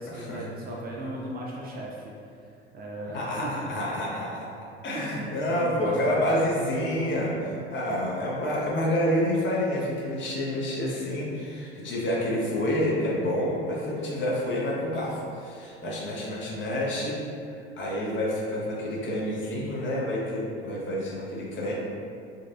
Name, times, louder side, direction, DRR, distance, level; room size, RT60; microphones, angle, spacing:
voice 1, 0.0-3.8 4.9-6.6, right 1 dB, 30° right, -2 dB, 0.5 m, -38 dB
voice 2, 3.1-4.5 4.8-17.2 17.8-21.7, left 1 dB, 35° left, -4 dB, 0.9 m, -28 dB
4.0 x 2.4 x 2.5 m, 2.4 s
figure-of-eight pair, 65°, 32 cm